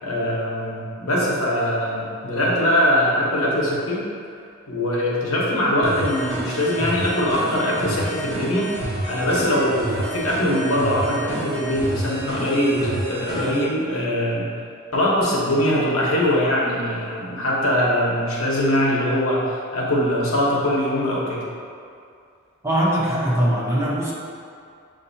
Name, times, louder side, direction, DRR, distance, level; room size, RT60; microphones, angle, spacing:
voice 1, 0.0-4.0 4.7-8.7 9.1-14.5 14.9-21.4, equal, 90° left, -5 dB, 1.0 m, -22 dB
sound 1, 5.8-13.6, right 1 dB, 65° right, 1.1 m, -29 dB
voice 2, 22.6-24.1, equal, 15° right, -6 dB, 0.7 m, -21 dB
7.1 x 2.7 x 2.7 m, 2.4 s
head